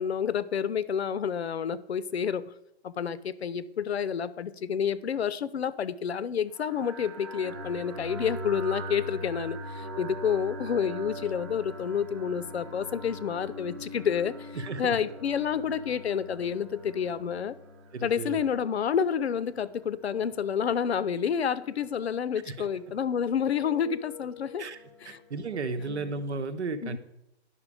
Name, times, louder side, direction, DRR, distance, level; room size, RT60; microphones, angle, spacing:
voice 1, 0.0-2.5 2.8-17.6 18.0-24.6 25.0-25.2 25.8-26.1 26.8-27.0, left 7 dB, 70° left, 0.7 m, -29 dB
sound 1, 6.5-26.2, equal, 25° right, 0.8 m, -43 dB
voice 2, 14.5-15.0 17.9-18.4 22.5-22.6 24.6-24.8 25.0-27.0, right 3 dB, 85° right, 1.1 m, -34 dB
11.0 x 5.7 x 4.9 m
hypercardioid pair, 175°, 33 cm